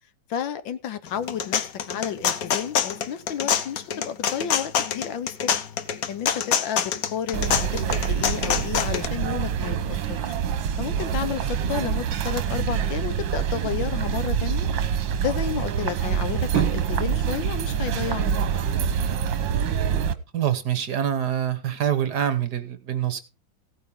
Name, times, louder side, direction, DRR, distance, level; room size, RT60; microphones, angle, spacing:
voice 1, 0.3-5.6 6.1-9.8 10.1-10.3 10.8-14.7 15.2-18.4, left 9 dB, 75° left, 1.7 m, -31 dB
sound 1, 1.1-9.1, left 8 dB, 55° left, 1.2 m, -25 dB
sound 2, 7.3-20.1, right 8 dB, 75° right, 1.7 m, -26 dB
voice 2, 20.3-23.2, right 9 dB, 60° right, 1.7 m, -25 dB
16.0 x 9.1 x 3.7 m
omnidirectional pair, 2.1 m